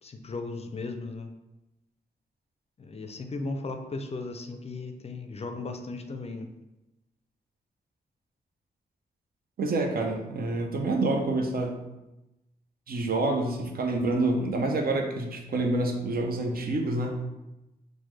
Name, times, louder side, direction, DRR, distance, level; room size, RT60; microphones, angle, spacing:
voice 1, 0.0-1.3 2.8-6.5, left 3 dB, 35° left, 6 dB, 0.4 m, -36 dB
voice 2, 9.6-11.8 12.9-17.2, right 2 dB, 60° right, 3 dB, 0.5 m, -27 dB
3.2 x 2.1 x 3.1 m, 0.98 s
supercardioid pair, 45°, 17 cm